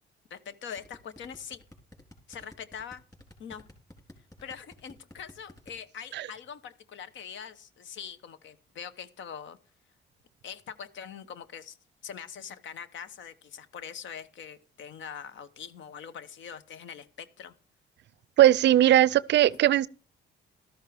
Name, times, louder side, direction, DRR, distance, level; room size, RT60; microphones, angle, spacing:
voice 1, 0.3-1.6 2.3-3.0 3.4-3.7 4.4-9.6 10.4-11.8 12.0-17.5, left 7 dB, 70° left, 1.0 m, -43 dB
sound 1, 0.8-5.7, left 1 dB, 20° left, 3.8 m, -51 dB
voice 2, 18.4-19.9, right 12 dB, 65° right, 0.4 m, -19 dB
13.0 x 12.5 x 3.5 m
cardioid pair, 90°, 20 cm